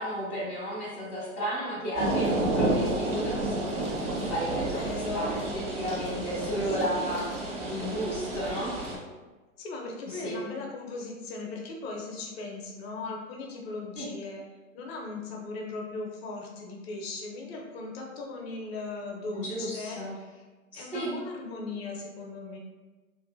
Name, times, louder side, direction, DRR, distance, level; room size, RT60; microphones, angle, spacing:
voice 1, 0.0-3.6 4.0-7.3 7.7-8.7 10.0-10.4 14.0-14.1 19.3-20.1 20.7-21.1, equal, 5° right, -17 dB, 0.4 m, -33 dB
sound 1, 1.9-9.0, right 2 dB, 55° right, 1.0 m, -30 dB
voice 2, 4.5-5.5 6.6-7.2 9.6-14.4 14.7-20.4 20.7-22.6, left 3 dB, 45° left, 0 dB, 0.7 m, -38 dB
2.8 x 2.6 x 2.5 m, 1.3 s
hypercardioid pair, 125°, 42 cm